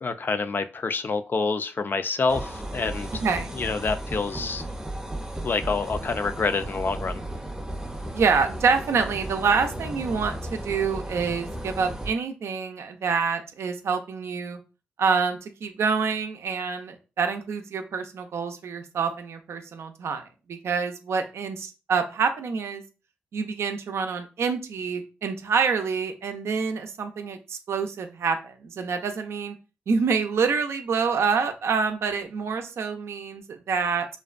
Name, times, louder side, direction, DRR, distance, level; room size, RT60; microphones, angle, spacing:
voice 1, 0.0-3.2 3.5-4.6 5.4-7.2, left 4 dB, 45° left, 0.3 m, -27 dB
sound 1, 2.3-12.1, right 1 dB, 10° right, 0.6 m, -35 dB
voice 2, 3.2-3.5 8.1-14.6 15.0-20.2 20.5-22.8 23.3-29.6 29.9-34.1, right 5 dB, 75° right, 0.4 m, -27 dB
2.5 x 2.1 x 2.4 m
cardioid pair, 50°, 5 cm